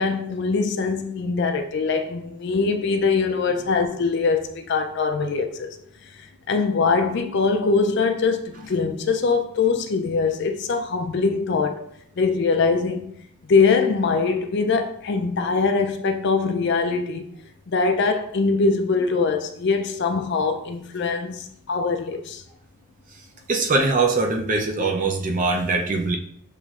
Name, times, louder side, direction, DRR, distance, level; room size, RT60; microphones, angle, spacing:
voice 1, 0.0-5.7 6.5-11.9 12.2-13.1 13.5-17.2 17.7-22.4, left 4 dB, 50° left, 0.4 m, -22 dB
voice 2, 23.5-26.2, right 3 dB, 35° right, 0.5 m, -22 dB
6.7 x 3.0 x 2.4 m
head